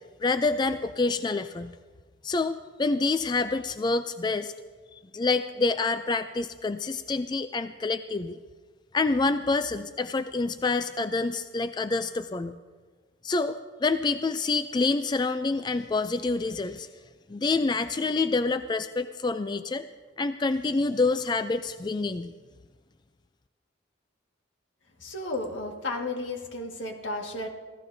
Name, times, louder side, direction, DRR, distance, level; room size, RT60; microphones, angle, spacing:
voice 1, 0.2-1.7 2.2-4.5 4.9-8.4 8.9-12.6 13.2-16.9 17.3-19.9 20.2-22.3, left 3 dB, 25° left, 10 dB, 0.3 m, -27 dB
voice 2, 25.0-27.5, left 2 dB, 85° left, 2 dB, 1.7 m, -33 dB
26.0 x 15.0 x 2.7 m, 1.4 s
head